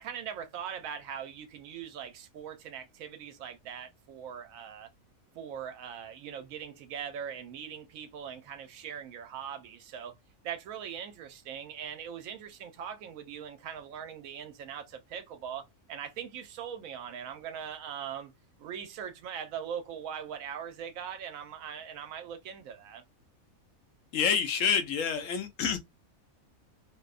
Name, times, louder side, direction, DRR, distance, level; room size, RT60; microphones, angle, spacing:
voice 1, 0.0-4.9 5.3-10.1 10.4-18.3 18.6-23.0, right 8 dB, 75° right, 0.9 m, -41 dB
voice 2, 24.1-25.8, left 7 dB, 70° left, 0.9 m, -27 dB
2.6 x 2.1 x 2.3 m
omnidirectional pair, 1.5 m